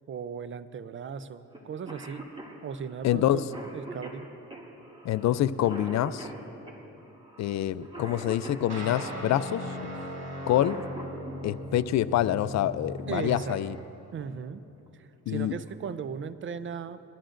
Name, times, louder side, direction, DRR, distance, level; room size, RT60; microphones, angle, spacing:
voice 1, 0.1-2.3 2.6-4.3 13.1-13.6 14.1-14.6 14.9-17.1, right 6 dB, 40° right, 13 dB, 0.5 m, -37 dB
Cough, 1.5-1.6 1.9-9.2 10.3-11.4 13.0-13.1 14.1-14.4 14.9-15.0 15.3-15.8, right 2 dB, 20° right, 2.2 m, -43 dB
voice 2, 3.0-3.4 5.0-6.3 7.4-9.6 10.5-10.8 11.4-13.8 15.3-15.5, left 12 dB, 65° left, 15 dB, 0.5 m, -26 dB
sound 1, 8.7-13.9, equal, 55° right, 3.0 m, -38 dB
21.5 x 13.5 x 2.6 m, 2.9 s
cardioid pair, 90°, 30 cm